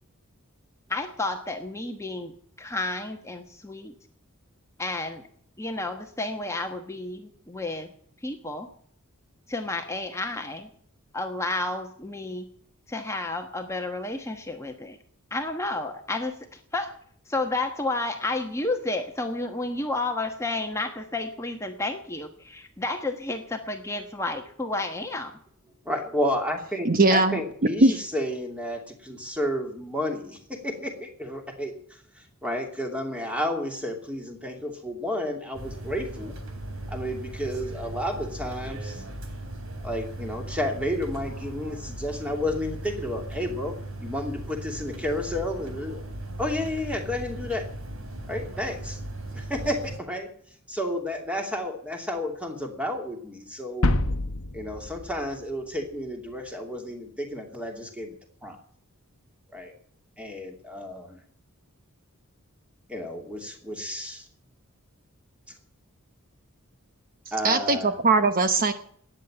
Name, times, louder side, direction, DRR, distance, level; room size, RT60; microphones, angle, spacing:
voice 1, 0.9-3.9 4.8-5.2 5.6-7.9 8.2-8.7 9.5-10.7 11.1-12.5 12.9-15.0 15.3-17.0 17.3-25.3, left 2 dB, 15° left, 4 dB, 1.2 m, -31 dB
voice 2, 25.8-36.4 36.9-39.0 39.8-46.0 46.4-47.7 48.3-49.0 49.3-50.3 50.7-53.9 54.5-58.1 58.4-58.6 59.5-59.7 60.2-61.2 62.9-64.3 67.3-67.9, left 1 dB, 5° right, 3 dB, 2.8 m, -31 dB
voice 3, 26.8-27.4 27.8-28.0 67.4-68.7, right 3 dB, 40° right, 9 dB, 1.0 m, -20 dB
sound 1, 35.5-50.0, right 1 dB, 65° right, 3.4 m, -37 dB
sound 2, 53.8-55.9, left 1 dB, 75° left, 1.1 m, -27 dB
14.0 x 9.4 x 9.9 m, 0.62 s
head